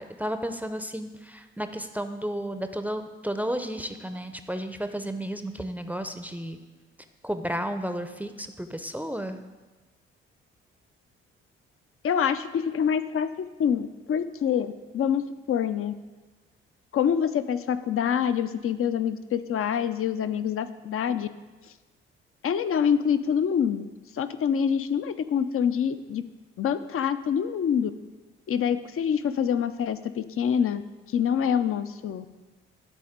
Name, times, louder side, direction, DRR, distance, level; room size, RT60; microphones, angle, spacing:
voice 1, 0.0-6.6 7.2-9.4, equal, 5° right, 8 dB, 0.7 m, -32 dB
voice 2, 12.0-15.2 15.5-15.9 16.9-21.3 22.4-23.9 24.1-26.2 26.6-27.9 28.5-30.8 31.1-32.3, left 8 dB, 45° left, 12 dB, 0.6 m, -26 dB
12.5 x 4.2 x 5.1 m, 1.2 s
hypercardioid pair, 45°, 30 cm